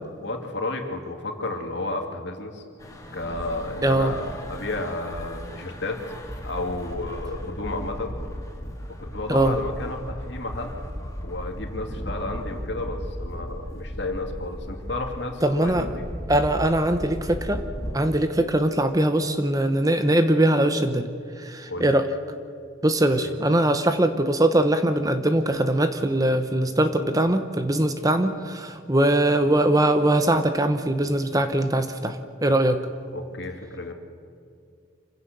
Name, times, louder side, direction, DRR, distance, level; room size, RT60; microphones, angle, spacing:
voice 1, 0.0-2.6 3.1-6.0 6.4-8.1 8.8-10.7 11.2-16.0 21.7-21.9 23.2-23.3 33.1-33.9, left 2 dB, 60° left, 3 dB, 2.7 m, -32 dB
sound 1, 2.8-18.0, equal, 15° left, 2.3 m, -36 dB
voice 2, 3.8-4.1 9.3-9.6 15.4-15.9 16.3-17.7 17.9-21.1 21.4-22.1 22.8-32.8, right 1 dB, 20° right, 9 dB, 0.9 m, -21 dB
27.0 x 16.0 x 6.9 m, 2.3 s
head